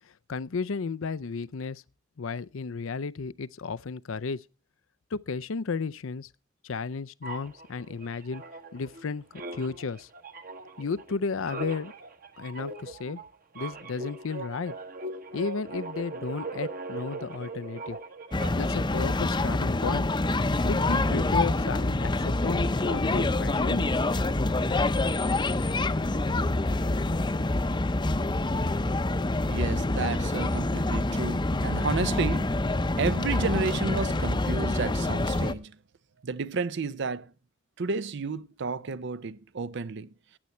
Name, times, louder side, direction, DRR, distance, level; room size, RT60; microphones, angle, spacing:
voice 1, 0.3-1.8 2.2-4.4 5.1-6.3 6.6-8.4 8.7-9.2 9.5-10.1 10.8-11.9 12.4-13.2 13.5-14.7 15.3-18.0 18.5-20.1 20.6-23.9, left 4 dB, 80° left, 0.6 m, -33 dB
sound 1, 7.2-9.0 9.3-18.8, right 2 dB, 45° right, 1.2 m, -40 dB
sound 2, 18.3-35.5, left 2 dB, 25° left, 0.7 m, -26 dB
voice 2, 29.5-35.8 36.2-37.3 37.8-40.1, right 4 dB, 60° right, 0.6 m, -31 dB
15.0 x 9.5 x 4.3 m
head